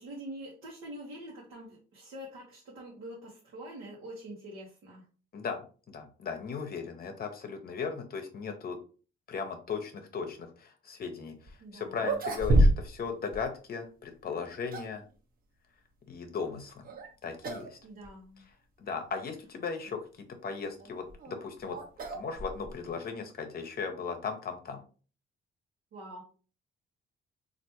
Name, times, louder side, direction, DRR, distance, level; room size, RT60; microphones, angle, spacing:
voice 1, 0.0-5.0 11.6-12.1 17.8-18.4 25.9-26.2, right 1 dB, 85° right, -4 dB, 1.0 m, -45 dB
voice 2, 5.3-8.8 9.3-15.0 16.1-16.9 17.2-17.8 18.8-21.8 22.1-24.8, left 5 dB, 50° left, 6 dB, 0.7 m, -37 dB
sound 1, 11.5-11.6 12.0-13.1 13.3-13.5 14.3-15.0 16.8-17.1 17.4-17.7 18.0-18.1 18.9-19.0 20.8-22.9, right 1 dB, 45° right, 0.8 m, -28 dB
3.3 x 2.5 x 2.8 m, 0.37 s
cardioid pair, 90°, 20 cm